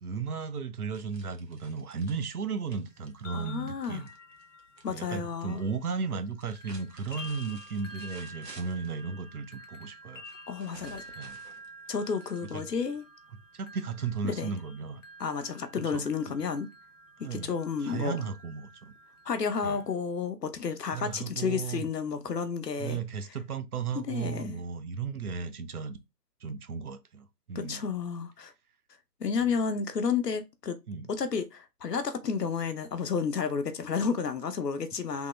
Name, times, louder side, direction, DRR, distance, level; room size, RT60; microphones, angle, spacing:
voice 1, 0.0-4.1 4.9-10.2 11.2-11.4 12.5-12.6 13.3-15.0 15.9-16.3 17.2-17.5 17.8-18.9 19.6-19.8 20.9-21.9 22.8-26.0 26.4-27.8 29.4-29.6 30.9-31.1, right 5 dB, 65° right, 0.7 m, -35 dB
sound 1, 0.9-4.9 5.1-5.8 6.3-9.0 10.2-12.9, right 3 dB, 85° right, 1.2 m, -53 dB
sound 2, 3.0-6.3 6.6-19.9, equal, 50° left, 0.6 m, -50 dB
voice 2, 3.3-4.0 4.8-5.6 10.5-11.0 11.9-13.0 14.2-14.5 15.2-16.7 17.2-18.2 19.2-23.0 24.1-24.6 27.5-28.5 29.2-30.8 31.1-35.3, left 6 dB, 75° left, 0.8 m, -31 dB
3.5 x 2.2 x 3.1 m
figure-of-eight pair, 160°, 48 cm